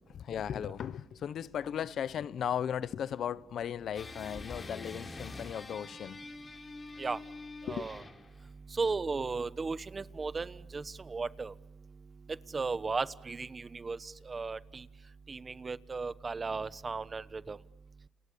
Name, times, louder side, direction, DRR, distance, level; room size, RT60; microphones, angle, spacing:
voice 1, 0.1-6.2 7.7-7.9, left 9 dB, 65° left, 0.9 m, -36 dB
sound 1, 3.9-8.4, left 3 dB, 30° left, 3.7 m, -45 dB
voice 2, 7.6-8.0 8.7-11.5 12.3-14.9 15.3-17.6, right 4 dB, 30° right, 1.1 m, -36 dB
30.0 x 28.5 x 7.0 m
cardioid pair, 90°, 0 cm